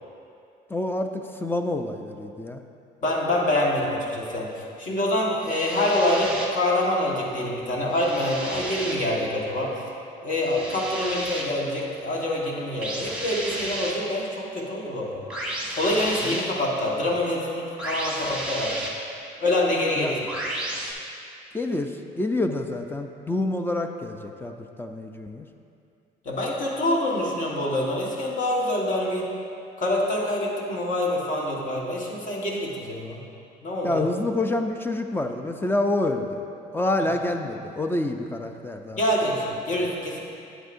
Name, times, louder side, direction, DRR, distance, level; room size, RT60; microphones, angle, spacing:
voice 1, 0.7-2.6 16.2-16.4 20.0-20.1 21.5-25.5 33.8-36.4 36.7-39.0, left 2 dB, 15° left, 5 dB, 0.4 m, -27 dB
voice 2, 3.0-9.7 10.2-15.2 15.8-18.7 19.4-20.2 26.2-29.3 29.8-33.2 33.6-34.0 37.0-37.1 38.9-40.2, left 1 dB, 50° left, -3 dB, 1.5 m, -26 dB
sound 1, 5.4-6.4 7.9-8.9 10.4-11.4 12.8-13.9 15.3-16.4 17.8-18.9 20.3-20.9, right 1 dB, 5° right, 1.2 m, -32 dB
9.0 x 7.9 x 2.6 m, 2.5 s
cardioid pair, 110°, 17 cm